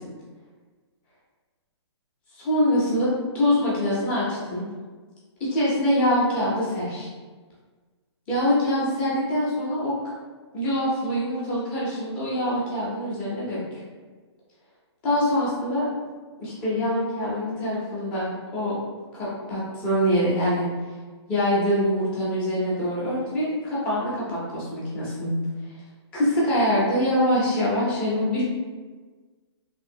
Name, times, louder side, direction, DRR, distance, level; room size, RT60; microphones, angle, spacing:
voice 1, 2.3-3.1 3.3-4.7 5.4-7.1 8.3-9.9 10.5-13.6 15.0-15.9 16.4-18.8 19.1-20.6 21.3-25.3 26.1-28.4, equal, 5° left, -8 dB, 0.4 m, -24 dB
2.8 x 2.5 x 2.6 m, 1.4 s
hypercardioid pair, 170°, 15 cm